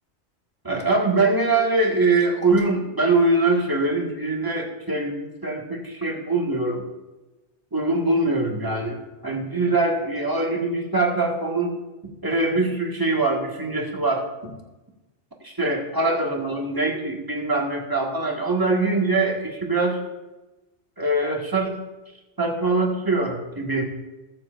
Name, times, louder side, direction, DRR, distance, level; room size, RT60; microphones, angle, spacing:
voice 1, 0.6-6.8 7.7-11.8 12.2-14.5 15.4-20.0 21.0-21.8 22.4-23.8, right 2 dB, 20° right, 0 dB, 1.7 m, -23 dB
21.0 x 7.3 x 2.6 m, 1.1 s
omnidirectional pair, 1.1 m